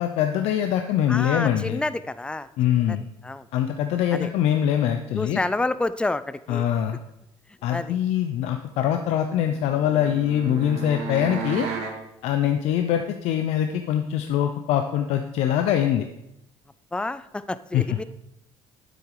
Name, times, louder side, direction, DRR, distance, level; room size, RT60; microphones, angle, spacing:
voice 1, 0.0-1.8 2.6-3.0 3.5-5.4 6.5-7.0 7.6-11.7 12.2-16.1 17.7-18.0, left 10 dB, 70° left, 6 dB, 0.7 m, -23 dB
voice 2, 1.1-2.5 2.8-3.0 3.2-3.5 4.1-4.3 5.1-6.7 7.7-8.0 16.9-18.0, left 2 dB, 10° left, 15 dB, 0.5 m, -29 dB
sound 1, 9.4-12.0, right 6 dB, 70° right, 2.1 m, -33 dB
9.3 x 8.0 x 4.9 m, 0.83 s
cardioid pair, 100°, 11 cm